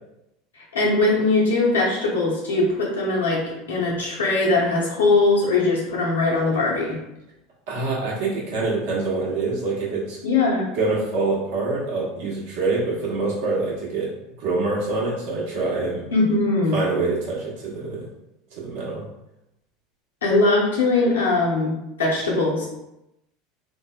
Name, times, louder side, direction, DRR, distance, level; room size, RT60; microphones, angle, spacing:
voice 1, 0.5-7.0 10.2-10.7 16.1-16.8 20.2-22.7, left 3 dB, 90° left, -4 dB, 0.9 m, -21 dB
voice 2, 7.7-10.2 10.7-14.1 14.4-16.0 16.7-18.1 18.5-19.1, right 3 dB, 70° right, -4 dB, 1.0 m, -25 dB
3.8 x 2.1 x 2.3 m, 0.88 s
hypercardioid pair, 85°, 0 cm